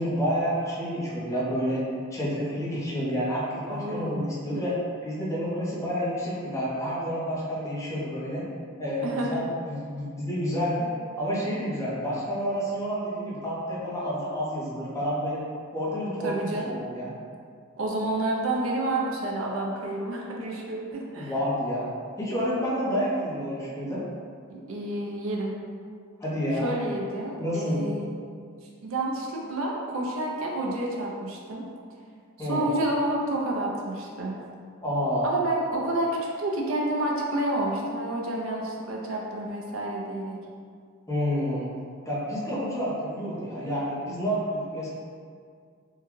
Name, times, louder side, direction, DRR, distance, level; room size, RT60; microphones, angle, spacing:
voice 1, 0.0-1.8 2.1-4.7 5.0-8.5 8.8-10.9 11.2-15.4 15.7-17.1 21.1-21.9 22.2-24.0 26.2-26.7 27.4-27.9 32.4-32.7 34.8-35.3 41.1-41.7 42.1-44.9, equal, 15° left, -8 dB, 0.8 m, -29 dB
voice 2, 3.7-4.3 9.0-9.4 16.2-16.7 17.8-20.8 21.1-21.3 24.5-25.5 26.6-28.1 28.8-31.6 32.4-34.3 35.2-40.4, right 1 dB, 75° right, -2 dB, 0.6 m, -29 dB
3.7 x 2.3 x 3.1 m, 2.2 s
head